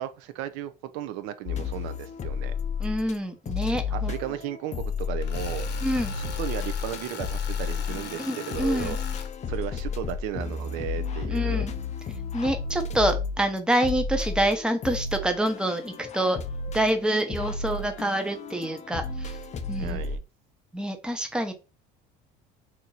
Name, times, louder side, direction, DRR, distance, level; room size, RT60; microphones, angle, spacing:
voice 1, 0.0-2.5 3.9-5.7 6.1-9.0 9.5-11.7 19.8-20.2, right 12 dB, 75° right, 0.5 m, -35 dB
sound 1, 1.5-3.2 3.5-20.2, left 5 dB, 35° left, 0.5 m, -32 dB
voice 2, 2.8-4.1 5.8-6.1 8.2-9.0 11.3-11.7 12.3-16.4 16.7-19.4 19.7-20.0 20.7-21.5, right 1 dB, 5° right, 0.7 m, -27 dB
Tools, 5.2-9.3, left 7 dB, 55° left, 0.9 m, -40 dB
2.9 x 2.5 x 3.9 m
supercardioid pair, 100°, 21 cm